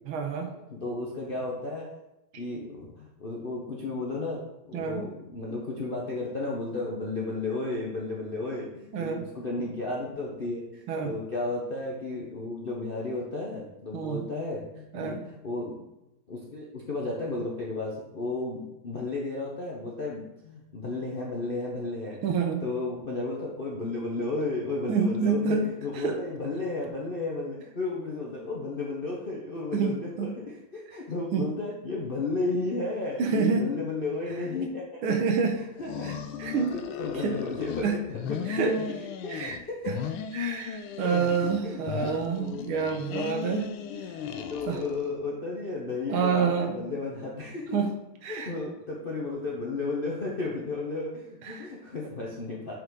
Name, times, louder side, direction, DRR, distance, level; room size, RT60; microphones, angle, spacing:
voice 1, 0.1-0.5 4.7-5.1 8.9-9.2 10.9-11.2 13.9-14.3 14.9-15.2 22.2-22.6 24.9-25.7 25.9-26.2 29.7-30.3 31.3-31.5 33.2-33.7 35.0-35.6 36.0-36.1 36.4-36.7 37.2-37.3 37.8-37.9 38.5-38.7 39.3-39.6 40.3-43.7 44.7-44.8 46.1-46.8 47.7-47.9 48.2-48.5 51.4-51.7, right 6 dB, 80° right, 4 dB, 1.8 m, -27 dB
voice 2, 0.7-1.9 2.3-15.8 16.3-22.3 22.6-35.0 35.6-36.1 36.4-38.8 39.2-39.9 41.0-41.2 41.6-43.6 43.9-44.0 44.3-47.7 48.3-52.7, left 3 dB, 50° left, -4 dB, 0.6 m, -33 dB
sound 1, 35.8-37.9 38.1-39.6 39.9-41.6 41.9-45.1, left 7 dB, 80° left, 1.4 m, -36 dB
6.9 x 5.5 x 3.8 m, 0.93 s
omnidirectional pair, 2.3 m